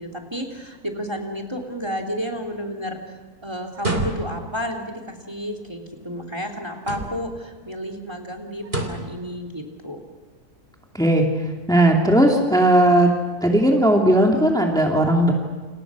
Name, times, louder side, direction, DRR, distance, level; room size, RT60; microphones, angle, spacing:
voice 1, 0.0-3.1 3.4-10.0, equal, 15° right, 4 dB, 3.1 m, -31 dB
sound 1, 3.7-4.6 6.8-7.4 8.6-9.2, right 1 dB, 35° right, 3.5 m, -28 dB
voice 2, 10.9-11.3 11.7-13.1 13.4-15.3, right 1 dB, ahead, 0 dB, 2.6 m, -17 dB
29.5 x 28.5 x 6.3 m, 1.4 s
omnidirectional pair, 1.6 m